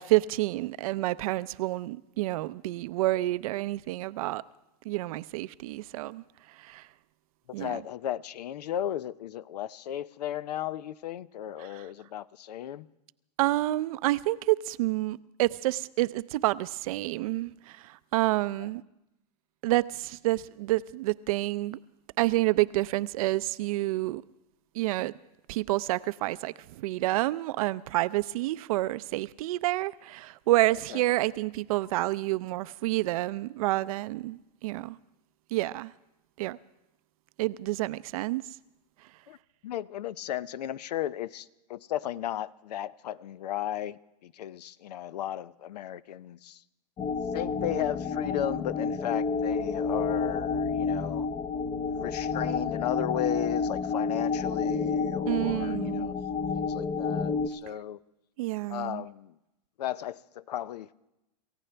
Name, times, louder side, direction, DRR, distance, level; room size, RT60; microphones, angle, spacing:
voice 1, 0.0-4.4 4.8-6.2 6.6-6.9 7.5-7.8 11.7-11.8 13.4-18.8 19.6-21.8 22.2-24.2 24.7-25.1 25.5-35.0 35.5-35.9 36.4-36.6 37.4-38.4 55.3-56.1 58.4-59.0, right 18 dB, 60° right, 0.5 m, -28 dB
voice 2, 7.6-12.9 30.9-31.0 39.3-39.4 39.6-46.6 47.3-51.3 51.8-56.1 56.5-58.0 58.7-59.3 59.8-61.1, left 12 dB, 80° left, 0.6 m, -35 dB
sound 1, 47.0-57.5, left 5 dB, 20° left, 0.7 m, -30 dB
27.0 x 15.5 x 3.4 m
hypercardioid pair, 130°, 21 cm